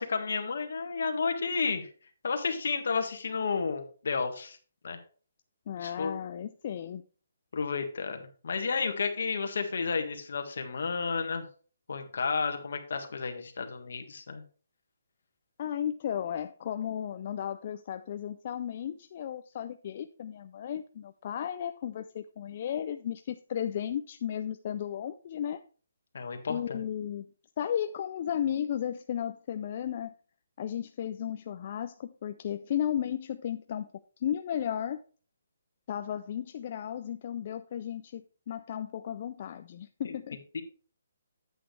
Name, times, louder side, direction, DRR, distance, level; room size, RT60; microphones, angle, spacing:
voice 1, 0.0-1.9 2.2-4.6 4.8-5.0 5.8-6.1 7.5-11.4 11.9-14.4 26.1-26.8 40.0-40.1 40.5-40.6, left 5 dB, 55° left, 6 dB, 1.6 m, -32 dB
voice 2, 5.7-7.0 15.6-25.6 26.5-27.3 27.6-30.1 30.6-33.9 34.2-35.0 35.9-40.4, left 9 dB, 30° left, 9 dB, 0.3 m, -34 dB
9.2 x 8.0 x 3.2 m, 0.39 s
hypercardioid pair, 175°, 0 cm